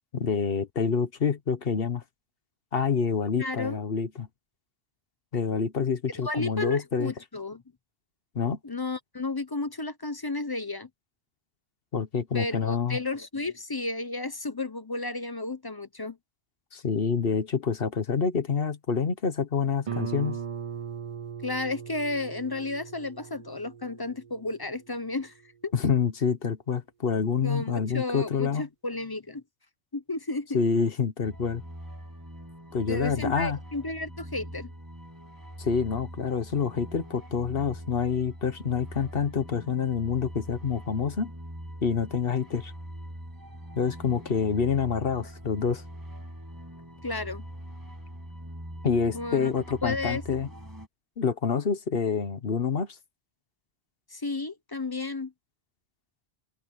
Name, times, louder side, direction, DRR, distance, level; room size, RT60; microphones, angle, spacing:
voice 1, 0.1-2.0 2.7-4.3 5.3-7.1 8.3-8.6 11.9-13.0 16.7-20.4 25.7-28.7 30.5-31.6 32.7-33.6 35.6-41.3 41.8-42.7 43.8-45.8 48.8-50.5 51.2-53.0, left 6 dB, 60° left, 1.3 m, -27 dB
voice 2, 3.4-3.8 6.2-7.6 8.6-10.9 12.3-16.2 21.4-25.3 25.6-25.7 27.4-29.4 29.9-30.6 32.9-34.7 47.0-47.5 49.1-49.5 49.8-50.2 54.1-55.3, left 2 dB, 25° left, 0.7 m, -32 dB
Guitar, 19.9-25.3, right 7 dB, 40° right, 0.6 m, -39 dB
sound 1, 31.2-50.9, equal, 20° right, 6.4 m, -43 dB
omnidirectional pair, 1.1 m